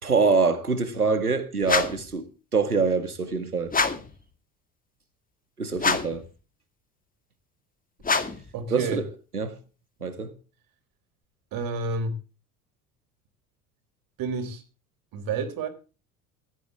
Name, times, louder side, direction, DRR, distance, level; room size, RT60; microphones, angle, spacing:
voice 1, 0.0-3.7 5.6-6.2 8.7-9.0 9.3-9.6 10.0-10.3, right 4 dB, 90° right, 2.0 m, -25 dB
sound 1, 1.6-2.1 3.7-4.2 5.8-6.3 8.0-8.5, left 4 dB, 20° left, 2.2 m, -26 dB
voice 2, 8.5-9.0 11.5-12.1 14.2-14.6 15.1-15.7, right 4 dB, 50° right, 4.1 m, -29 dB
17.0 x 13.0 x 3.7 m
figure-of-eight pair, 65°, 44 cm